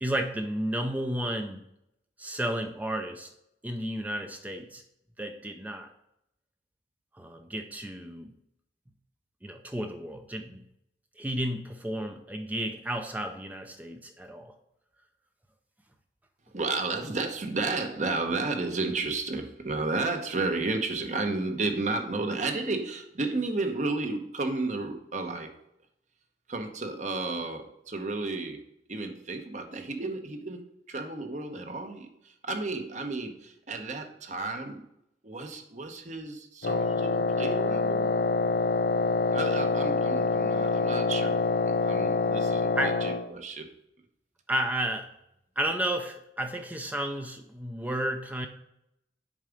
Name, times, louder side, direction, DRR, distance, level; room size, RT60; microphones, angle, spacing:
voice 1, 0.0-1.6 2.2-3.3 3.6-4.8 5.2-5.9 7.1-8.3 9.4-10.6 11.2-14.5 42.8-43.0 44.5-45.1 45.6-48.5, right 1 dB, 10° right, 5 dB, 0.5 m, -32 dB
voice 2, 16.5-25.5 26.5-28.6 28.9-34.8 35.2-38.3 39.3-43.7, right 3 dB, 45° right, 5 dB, 0.9 m, -32 dB
Wind instrument woodwind instrument, 36.6-43.3, left 3 dB, 75° left, 0.5 m, -26 dB
7.4 x 4.7 x 5.1 m, 0.80 s
head